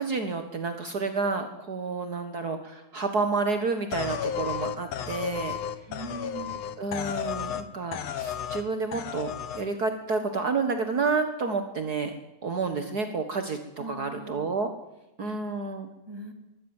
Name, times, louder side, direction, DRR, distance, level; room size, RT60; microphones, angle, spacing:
voice 1, 0.0-5.5 6.8-12.1 12.4-14.7 15.2-15.9, right 4 dB, 65° right, 7 dB, 0.9 m, -30 dB
sound 1, 3.9-7.7 7.9-8.6 8.9-9.6, left 8 dB, 60° left, 1.9 m, -33 dB
voice 2, 5.9-6.6 12.9-13.0 13.8-14.5 15.2-15.4 16.1-16.3, right 1 dB, 5° right, 6 dB, 2.4 m, -40 dB
22.0 x 17.0 x 7.4 m, 0.93 s
omnidirectional pair, 4.5 m